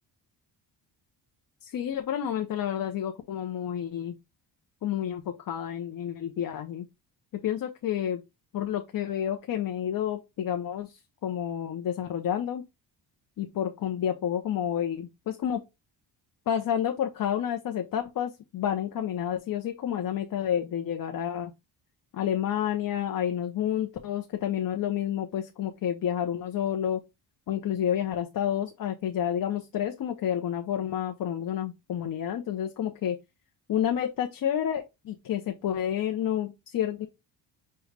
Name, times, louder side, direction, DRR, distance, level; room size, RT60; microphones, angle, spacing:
voice 1, 1.6-4.2 4.8-6.9 7.4-8.2 8.5-12.6 13.4-15.6 16.5-21.5 22.1-27.0 27.5-33.2 33.7-37.1, left 10 dB, 50° left, 0.6 m, -30 dB
6.3 x 2.3 x 3.2 m
cardioid pair, 105°, 45 cm